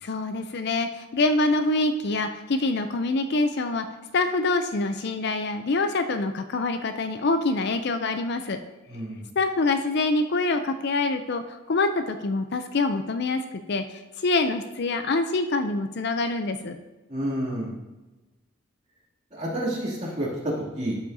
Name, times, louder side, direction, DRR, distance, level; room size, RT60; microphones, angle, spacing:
voice 1, 0.0-3.9 4.1-8.6 9.4-16.8, left 3 dB, 50° left, 8 dB, 0.5 m, -25 dB
voice 2, 8.9-9.3 17.1-17.8 19.3-21.0, right 1 dB, 30° right, -6 dB, 2.6 m, -29 dB
12.5 x 7.2 x 2.7 m, 1.1 s
head